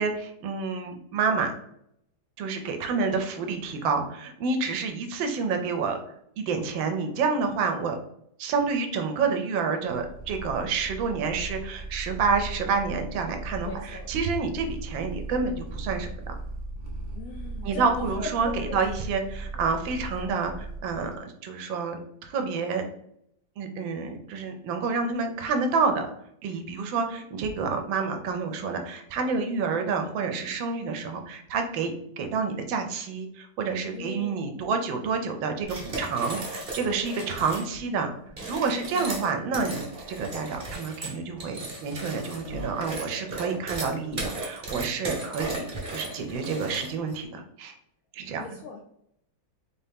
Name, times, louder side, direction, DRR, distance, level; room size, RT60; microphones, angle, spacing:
voice 1, 0.0-1.5 2.4-6.0 6.4-8.0 8.4-16.3 17.6-22.9 23.6-26.1 26.4-38.1 38.5-47.7 48.1-48.4, right 5 dB, 75° right, 5 dB, 1.3 m, -29 dB
Purr, 9.9-21.2, right 2 dB, 60° right, 0.5 m, -38 dB
voice 2, 13.6-14.2 17.1-19.1 33.9-34.5 38.9-39.1 48.4-48.8, left 4 dB, 85° left, 0 dB, 0.7 m, -39 dB
sound 1, 35.6-37.7 38.3-47.1, right 2 dB, 35° right, 0.9 m, -36 dB
3.9 x 2.7 x 3.5 m, 0.73 s
omnidirectional pair, 2.1 m